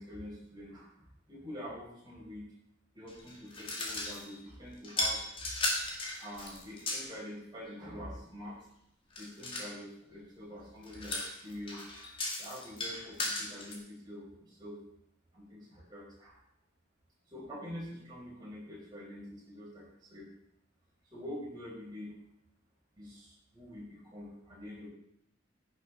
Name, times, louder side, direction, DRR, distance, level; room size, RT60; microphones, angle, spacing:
voice 1, 0.0-2.5 2.9-5.5 6.2-8.6 9.2-11.9 12.4-14.8 15.3-16.4 17.3-20.3 21.1-22.1 23.0-24.9, equal, 20° right, -6 dB, 5.5 m, -46 dB
sound 1, 3.1-4.4 4.8-7.1 9.1-9.7 10.8-13.8, left 2 dB, 25° left, 2.1 m, -36 dB
10.5 x 10.5 x 4.2 m, 0.73 s
head